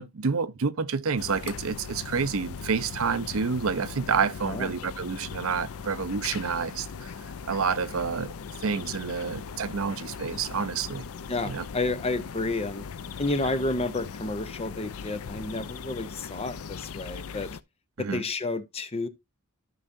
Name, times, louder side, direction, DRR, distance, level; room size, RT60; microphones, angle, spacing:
voice 1, 0.0-7.1 7.4-8.3 8.6-11.1 11.4-11.6 18.0-18.2, right 5 dB, 65° right, 0.6 m, -29 dB
sound 1, 1.2-17.6, left 6 dB, 70° left, 0.5 m, -39 dB
voice 2, 11.3-12.8 13.2-17.5 18.0-19.1, left 2 dB, 25° left, 0.7 m, -30 dB
13.5 x 5.5 x 2.6 m
head